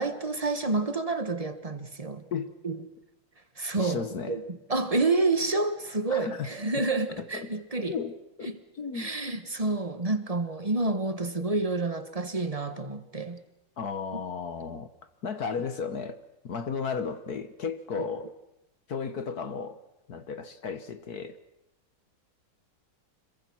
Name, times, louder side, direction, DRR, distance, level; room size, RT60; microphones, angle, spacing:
voice 1, 0.0-2.2 2.6-2.8 3.6-7.9 8.4-8.6 8.9-13.4, right 3 dB, 20° right, 1.2 m, -29 dB
voice 2, 3.8-4.4 6.1-6.5 6.8-6.9 7.2-7.5 7.9-8.5 8.8-9.1 13.8-14.9 15.2-16.2 16.4-18.3 18.9-19.8 20.1-21.4, left 5 dB, 50° left, 1.6 m, -34 dB
26.5 x 22.5 x 6.2 m
omnidirectional pair, 2.3 m